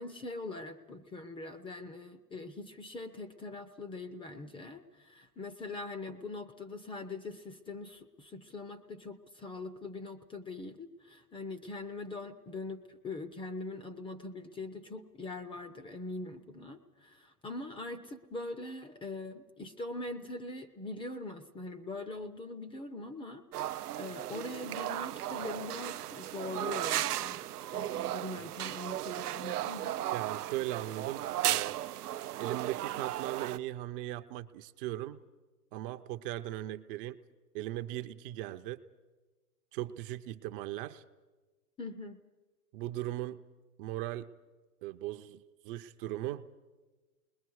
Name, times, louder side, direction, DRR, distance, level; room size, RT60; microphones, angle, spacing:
voice 1, 0.0-27.4 27.7-30.0 41.8-42.2, left 2 dB, 10° left, 10 dB, 0.6 m, -42 dB
sound 1, 23.5-33.6, right 13 dB, 85° right, 0.6 m, -35 dB
voice 2, 30.1-31.8 32.4-35.2 35.7-37.2 37.5-38.8 39.7-41.0 42.7-43.4 43.8-44.3 44.8-46.4, right 14 dB, 35° right, 10 dB, 0.7 m, -38 dB
29.0 x 21.0 x 4.8 m, 1.3 s
hypercardioid pair, 125°, 45 cm